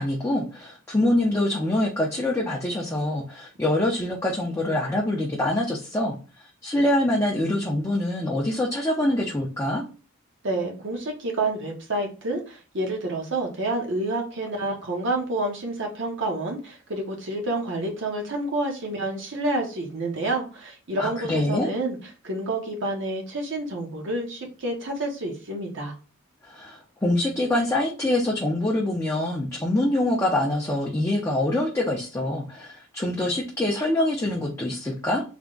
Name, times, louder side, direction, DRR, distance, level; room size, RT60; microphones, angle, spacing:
voice 1, 0.0-6.2 6.6-9.8 21.0-21.7 26.5-35.2, left 1 dB, 15° left, -3 dB, 0.5 m, -25 dB
voice 2, 10.4-25.9, right 2 dB, 55° right, 1 dB, 0.8 m, -29 dB
3.4 x 2.1 x 3.7 m, 0.35 s
head